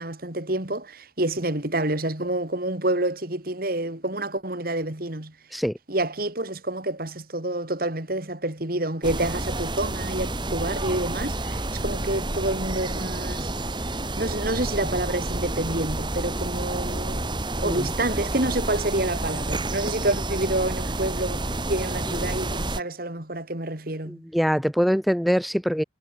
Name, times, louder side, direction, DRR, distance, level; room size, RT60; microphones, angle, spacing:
voice 1, 0.0-5.3 5.9-13.5 14.2-21.4 21.7-24.2, right 1 dB, 50° right, 2.9 m, -28 dB
sound 1, 9.0-22.8, right 2 dB, 25° right, 2.2 m, -29 dB
voice 2, 24.1-25.8, equal, ahead, 1.8 m, -23 dB
head